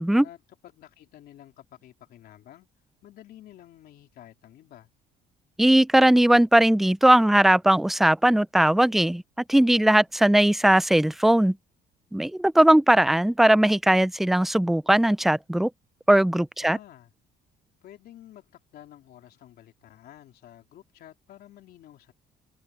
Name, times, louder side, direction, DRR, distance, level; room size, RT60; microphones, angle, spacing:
voice 1, 0.2-2.7 3.0-4.9 16.6-17.1 17.8-22.1, left 12 dB, 65° left, 3.5 m, -50 dB
voice 2, 5.6-9.2 9.5-11.6 12.1-15.7 16.1-16.8, right 1 dB, ahead, 0.3 m, -19 dB
cardioid pair, 110°, 17 cm